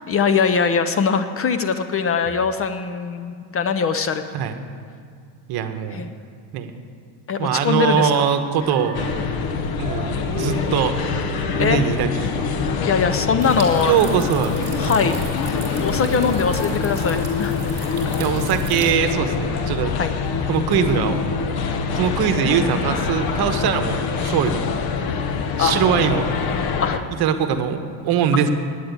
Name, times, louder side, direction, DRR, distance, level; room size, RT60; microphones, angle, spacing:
voice 1, 0.1-4.2 5.9-6.1 7.3-8.2 11.6-11.9 12.6-14.0 14.8-15.1 15.4-17.6 19.9-20.1 25.6-25.8 26.8-27.0, left 6 dB, 30° left, 10 dB, 0.5 m, -22 dB
voice 2, 5.5-6.1 6.5-6.7 7.4-9.1 9.8-11.0 11.6-12.3 13.8-14.5 14.8-15.1 18.2-19.9 20.5-21.2 21.9-24.6 25.6-26.3 27.2-28.5, right 7 dB, 50° right, 8 dB, 1.1 m, -21 dB
Female singing, 8.5-15.5, right 2 dB, 10° right, 3.1 m, -36 dB
sound 1, 8.9-27.0, left 5 dB, 50° left, 1.0 m, -25 dB
sound 2, 13.4-18.9, right 4 dB, 30° right, 3.0 m, -38 dB
9.4 x 8.6 x 9.4 m, 2.1 s
cardioid pair, 120°, 47 cm